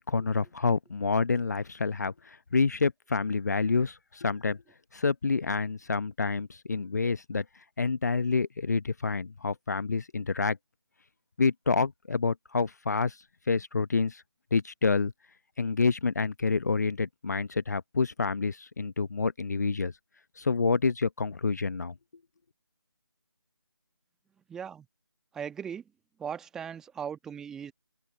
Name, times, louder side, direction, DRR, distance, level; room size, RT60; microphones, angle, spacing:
voice 1, 0.0-4.6 4.9-7.4 7.8-10.6 11.4-13.2 13.5-14.2 14.5-15.1 15.6-19.9 20.4-21.9, left 4 dB, 40° left, 0.8 m, -28 dB
voice 2, 24.4-24.9 25.3-25.9 26.2-27.7, right 7 dB, 5° right, 1.4 m, -38 dB
open air
figure-of-eight pair, 160°, 14 cm